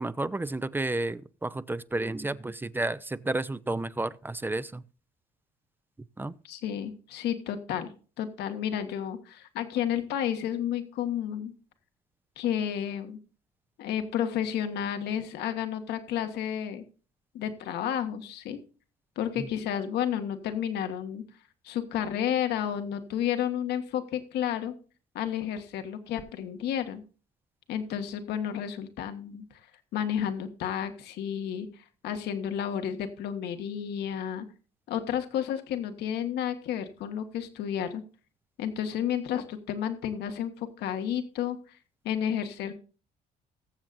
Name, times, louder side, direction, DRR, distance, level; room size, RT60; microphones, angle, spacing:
voice 1, 0.0-4.8 6.2-6.3 19.4-19.5, right 2 dB, 10° right, 0.5 m, -31 dB
voice 2, 6.4-7.9 8.2-11.5 12.4-13.2 13.8-16.8 17.3-18.6 19.1-21.2 21.6-24.7 25.1-27.0 27.7-29.4 29.9-34.4 34.9-38.0 38.6-41.8 42.0-42.8, left 9 dB, 80° left, 1.6 m, -31 dB
21.0 x 7.3 x 2.6 m
cardioid pair, 110°, 17 cm